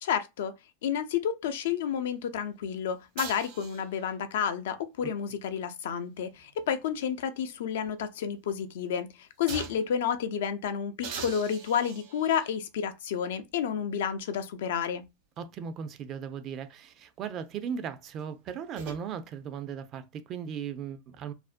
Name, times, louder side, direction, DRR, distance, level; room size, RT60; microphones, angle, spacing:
voice 1, 0.0-0.5 0.8-15.0, left 8 dB, 75° left, 0.4 m, -30 dB
sound 1, 3.2-4.1 5.9-7.4 7.9-8.0 9.5-10.0 11.0-12.6 13.5-13.6 18.2-19.0, right 5 dB, 60° right, 0.9 m, -43 dB
voice 2, 15.4-21.3, right 7 dB, 40° right, 0.4 m, -37 dB
2.4 x 2.1 x 2.4 m
supercardioid pair, 125°, 0 cm